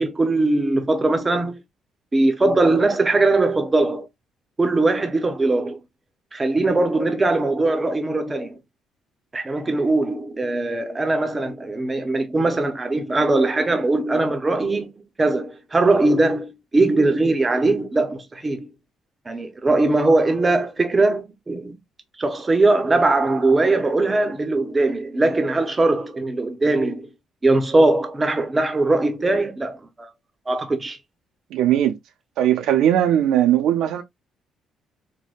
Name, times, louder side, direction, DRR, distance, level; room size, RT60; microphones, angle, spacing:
voice 1, 0.0-1.6 2.1-4.1 4.6-5.8 6.3-8.6 9.3-14.9 15.2-18.7 19.3-21.8 22.2-27.1 27.4-30.1 30.5-31.0, right 2 dB, 20° right, 0.6 m, -20 dB
voice 2, 31.5-32.0 32.4-34.0, right 11 dB, 80° right, 0.4 m, -19 dB
3.4 x 2.1 x 2.2 m
cardioid pair, 105°, 0 cm